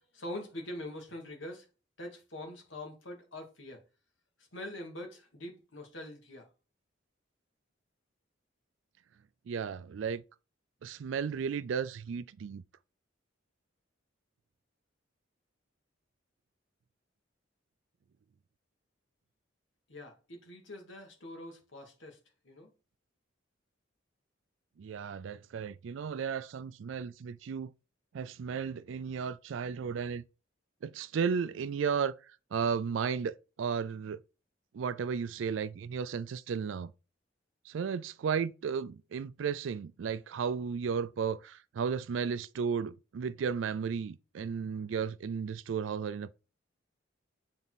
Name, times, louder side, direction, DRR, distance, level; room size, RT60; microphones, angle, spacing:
voice 1, 0.1-1.7 2.0-3.8 4.5-6.5 19.9-22.2 22.4-22.7, left 1 dB, 75° left, 2.3 m, -44 dB
voice 2, 9.5-10.2 10.8-12.6 24.8-27.7 28.1-30.2 30.8-32.1 32.5-34.2 34.7-36.9 37.7-46.3, right 6 dB, 75° right, 0.4 m, -34 dB
7.1 x 4.2 x 4.1 m
head